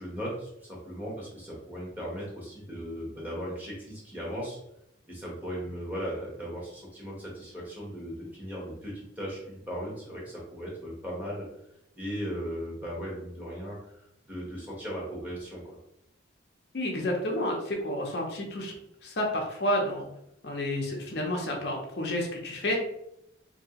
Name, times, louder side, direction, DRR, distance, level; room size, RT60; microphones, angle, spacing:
voice 1, 0.0-4.6 5.1-11.5 11.9-15.8, equal, 10° right, -4 dB, 0.9 m, -37 dB
voice 2, 16.7-18.7 19.0-20.1 20.4-22.8, left 1 dB, 60° left, 0 dB, 0.6 m, -30 dB
2.9 x 2.7 x 2.8 m, 0.79 s
head